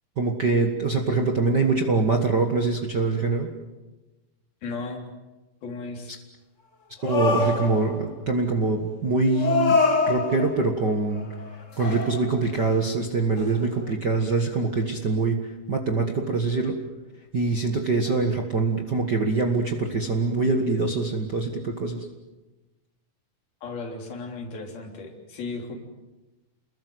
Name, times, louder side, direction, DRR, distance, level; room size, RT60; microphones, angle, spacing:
voice 1, 0.2-3.5 7.0-9.8 10.1-11.3 11.5-16.8 17.3-22.1, right 3 dB, 45° right, 3 dB, 1.4 m, -24 dB
voice 2, 4.6-5.0 5.6-6.1 18.1-18.3 23.6-25.8, left 3 dB, 80° left, 3 dB, 5.3 m, -35 dB
sound 1, 7.0-8.1 9.3-10.7 11.2-11.5 11.8-12.7 13.4-13.5, left 3 dB, 35° left, 1.1 m, -24 dB
30.0 x 21.0 x 7.9 m, 1.1 s
omnidirectional pair, 4.2 m